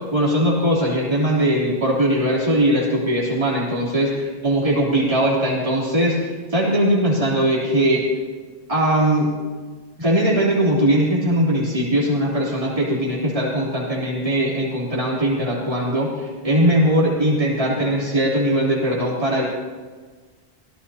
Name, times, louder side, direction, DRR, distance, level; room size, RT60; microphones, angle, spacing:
voice 1, 0.0-8.0 8.7-9.3 10.0-19.4, right 1 dB, 35° right, -5 dB, 3.5 m, -20 dB
25.0 x 17.0 x 2.9 m, 1.4 s
omnidirectional pair, 1.0 m